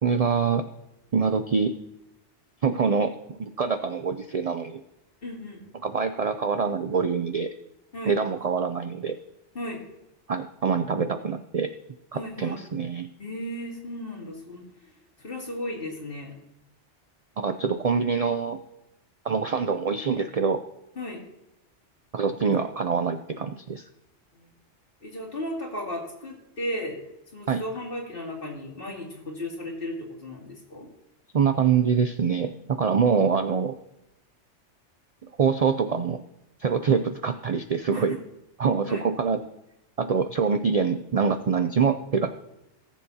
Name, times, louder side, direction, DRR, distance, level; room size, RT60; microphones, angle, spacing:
voice 1, 0.0-0.7 1.1-1.8 2.6-4.8 5.8-7.5 8.1-9.2 10.3-11.7 12.1-13.1 17.4-18.6 19.2-20.6 22.1-23.8 27.5-27.6 31.3-33.7 35.4-36.2 36.6-38.2 38.6-39.4 40.0-42.3, right 6 dB, 50° right, 9 dB, 0.4 m, -25 dB
voice 2, 5.2-5.6 7.9-8.2 9.5-9.8 12.1-12.6 13.2-14.6 15.2-16.3 21.0-21.2 24.3-24.5 25.0-27.0 27.3-30.9 37.9-38.0 38.9-39.0, left 1 dB, 50° left, -2 dB, 2.7 m, -35 dB
18.0 x 7.4 x 2.8 m, 0.89 s
omnidirectional pair, 1.2 m